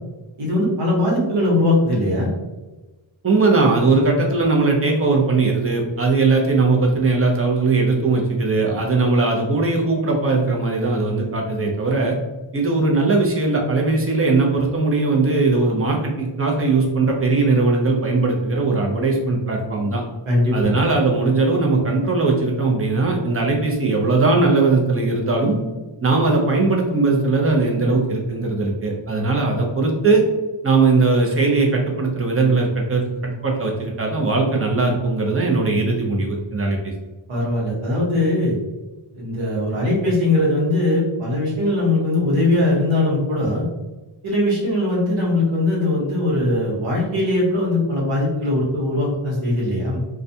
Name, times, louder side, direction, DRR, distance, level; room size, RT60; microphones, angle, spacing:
voice 1, 0.4-2.3 20.3-20.7 37.3-38.5 39.1-43.6 44.2-50.0, left 1 dB, 80° right, -4 dB, 1.1 m, -20 dB
voice 2, 3.2-12.1 12.5-20.0 20.5-25.6 26.0-30.2 30.6-36.8, right 3 dB, 30° right, -1 dB, 0.6 m, -19 dB
2.4 x 2.2 x 2.6 m, 1.1 s
wide cardioid pair, 75°, 48 cm